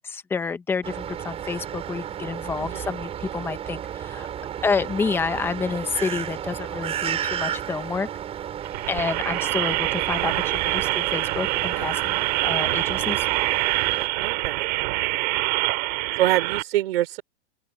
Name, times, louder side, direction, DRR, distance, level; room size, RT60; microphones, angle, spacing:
voice 1, 0.0-4.3 4.6-8.1 8.9-13.3, left 5 dB, 5° left, 0.8 m, -29 dB
sound 1, 0.8-14.1, right 10 dB, 20° right, 6.5 m, -33 dB
voice 2, 2.6-2.9 14.2-15.4 16.2-17.2, right 14 dB, 60° right, 3.8 m, -26 dB
sound 2, 8.6-16.6, right 23 dB, 40° right, 2.4 m, -25 dB
open air
supercardioid pair, 165°, 33 cm